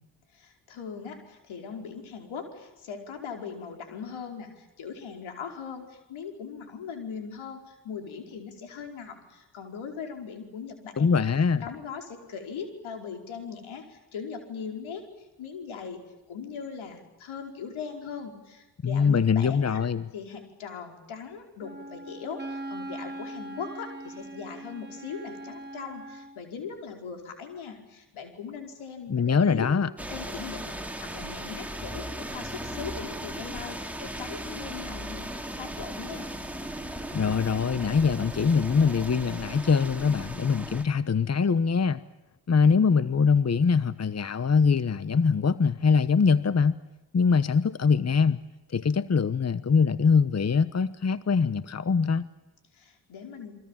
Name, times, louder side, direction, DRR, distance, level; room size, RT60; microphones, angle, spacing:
voice 1, 0.3-11.2 11.6-15.1 15.4-16.0 16.3-19.8 20.1-29.7 30.1-36.3 52.7-53.6, left 6 dB, 80° left, 5.2 m, -40 dB
voice 2, 11.0-11.7 18.8-20.1 29.1-29.9 37.1-42.0 42.5-46.8 47.1-48.4 48.7-52.3, left 5 dB, 35° left, 1.1 m, -23 dB
Wind instrument woodwind instrument, 21.6-26.4, right 2 dB, 20° right, 2.8 m, -40 dB
sound 1, 30.0-40.8, right 1 dB, 5° right, 3.5 m, -37 dB
29.0 x 23.5 x 7.5 m
supercardioid pair, 50°, 47 cm